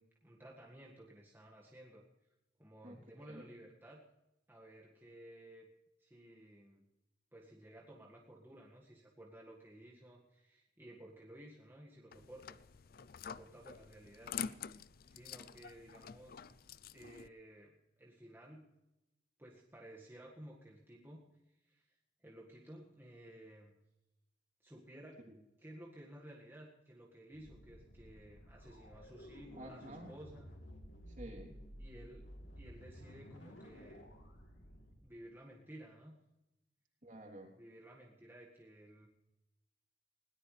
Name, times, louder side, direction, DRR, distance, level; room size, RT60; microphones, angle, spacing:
voice 1, 0.0-2.1 2.6-4.0 4.5-5.7 6.0-6.9 7.3-12.6 13.2-14.4 15.1-16.4 16.9-18.7 19.4-23.7 24.6-25.2 25.6-30.5 31.8-32.3 32.6-34.1 35.0-36.2 37.6-39.1, right 1 dB, 10° right, -3 dB, 1.8 m, -55 dB
voice 2, 2.8-3.5 25.2-25.3 29.6-30.1 31.1-31.6 37.0-37.5, right 1 dB, 45° right, 1 dB, 3.4 m, -51 dB
sound 1, 12.1-17.3, left 7 dB, 55° left, 0.5 m, -47 dB
sound 2, 27.3-34.9, equal, 90° left, 3.7 m, -54 dB
20.5 x 18.0 x 3.3 m, 0.94 s
head